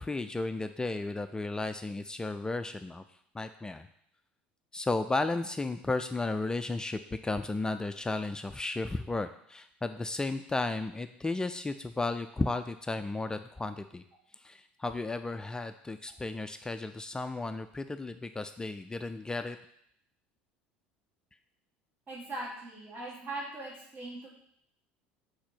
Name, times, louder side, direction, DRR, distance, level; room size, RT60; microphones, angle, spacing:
voice 1, 0.0-3.0 3.3-3.9 4.7-14.0 14.4-19.6, left 2 dB, 15° left, 9 dB, 0.4 m, -34 dB
voice 2, 22.1-24.3, right 2 dB, 35° right, -5 dB, 2.7 m, -40 dB
5.0 x 4.3 x 6.0 m, 0.69 s
figure-of-eight pair, 65°, 6 cm